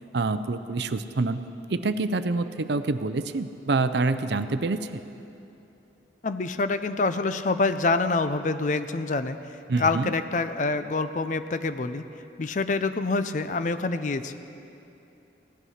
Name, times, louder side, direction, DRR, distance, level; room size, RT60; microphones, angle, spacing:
voice 1, 0.1-1.4 1.7-5.0 9.7-10.1, right 3 dB, 65° right, 11 dB, 0.5 m, -26 dB
voice 2, 6.2-9.4 9.8-12.0 12.4-14.3, left 3 dB, 40° left, 11 dB, 0.5 m, -26 dB
16.5 x 11.0 x 5.7 m, 2.8 s
head